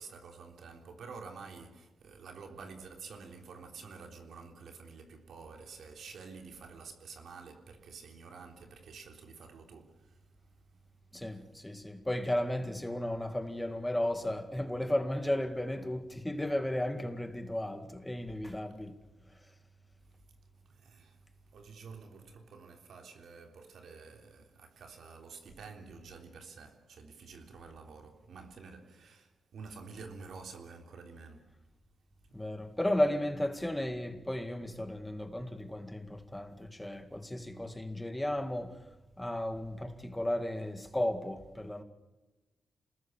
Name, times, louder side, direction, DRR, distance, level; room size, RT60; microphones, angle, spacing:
voice 1, 0.0-10.2 20.7-31.5 32.3-32.4, right 5 dB, 80° right, 3.7 m, -49 dB
voice 2, 11.1-19.0 32.3-38.8 39.2-41.8, left 1 dB, 10° left, 2.0 m, -34 dB
28.0 x 20.0 x 7.4 m
cardioid pair, 90°, 0 cm